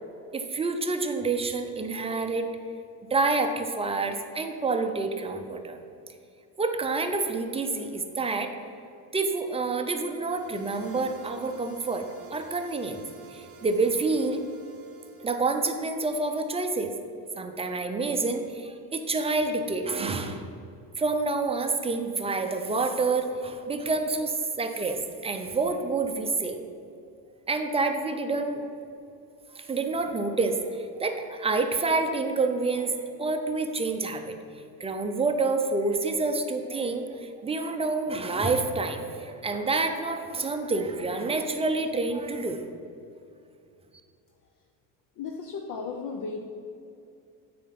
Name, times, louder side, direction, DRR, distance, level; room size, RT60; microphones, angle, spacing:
voice 1, 0.3-2.5 3.1-5.8 6.6-8.5 9.1-13.0 13.3-14.4 15.2-16.9 17.4-20.5 21.0-26.6 27.5-28.6 29.5-34.3 34.8-42.6, right 3 dB, 15° right, 6 dB, 0.5 m, -28 dB
sound 1, 10.1-15.9, right 4 dB, 30° right, 0.9 m, -51 dB
voice 2, 45.2-46.4, left 4 dB, 50° left, 2 dB, 0.7 m, -35 dB
8.9 x 4.3 x 5.9 m, 2.6 s
cardioid pair, 125°, 41 cm